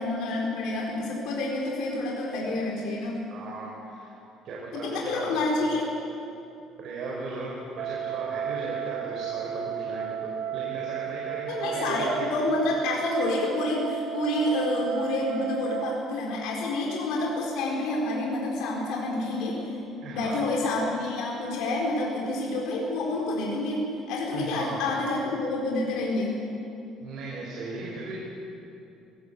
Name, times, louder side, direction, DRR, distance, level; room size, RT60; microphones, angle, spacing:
voice 1, 0.0-3.2 4.7-5.9 11.5-19.7 20.1-26.4, left 2 dB, 70° left, -2 dB, 4.2 m, -28 dB
voice 2, 3.3-4.1 4.4-5.4 6.8-12.3 20.0-20.5 24.3-25.0 27.0-28.1, right 3 dB, 50° right, -4 dB, 5.1 m, -37 dB
sound 1, 7.8-16.0, right 9 dB, 65° right, 0.8 m, -33 dB
23.0 x 18.0 x 8.3 m, 2.8 s
cardioid pair, 155°, 0 cm